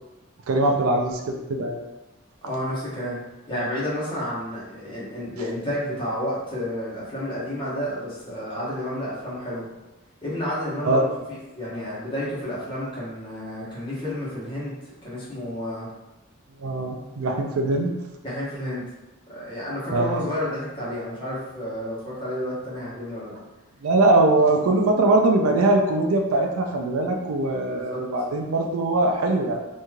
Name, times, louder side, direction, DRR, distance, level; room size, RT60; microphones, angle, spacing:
voice 1, 0.5-1.8 10.8-11.0 16.6-17.9 19.9-20.2 23.8-29.6, right 2 dB, 85° right, 2 dB, 0.4 m, -21 dB
voice 2, 2.4-3.2 3.5-9.7 10.2-15.9 18.2-18.8 19.3-23.4 27.7-28.0, left 1 dB, 25° left, -9 dB, 1.1 m, -31 dB
3.0 x 2.6 x 2.3 m, 1.0 s
head